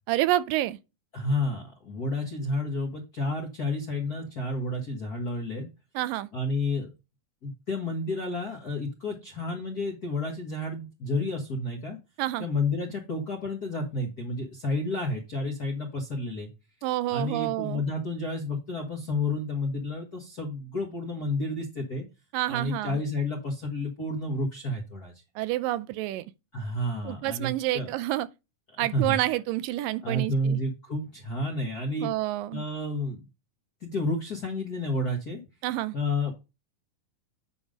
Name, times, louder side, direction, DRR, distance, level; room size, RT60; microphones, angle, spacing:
voice 1, 0.1-0.8 6.0-6.3 12.2-12.5 16.8-17.8 22.3-23.0 25.4-26.3 27.0-28.3 28.8-30.6 32.0-32.6 35.6-36.0, right 16 dB, 85° right, 2.2 m, -28 dB
voice 2, 1.1-5.7 6.3-6.9 7.4-12.0 12.4-16.5 17.1-22.1 22.5-25.1 26.5-27.9 28.7-29.2 30.0-32.1 32.5-33.3 33.8-35.4 35.9-36.3, left 1 dB, 45° left, 1.2 m, -30 dB
9.4 x 3.5 x 5.1 m
omnidirectional pair, 3.9 m